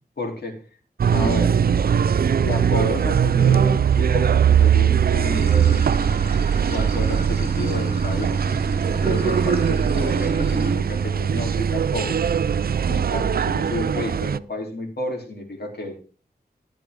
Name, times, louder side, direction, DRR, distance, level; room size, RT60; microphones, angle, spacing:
voice 1, 0.2-0.6 1.1-1.6 2.3-5.9 6.7-8.4 8.9-12.2 12.9-16.0, left 2 dB, 75° left, 0 dB, 3.4 m, -31 dB
sound 1, 1.0-14.4, right 8 dB, 65° right, 0.4 m, -20 dB
Water / Sink (filling or washing), 5.1-10.8, right 2 dB, 35° right, 3.2 m, -31 dB
12.0 x 9.8 x 3.7 m, 0.39 s
wide cardioid pair, 90°, 17 cm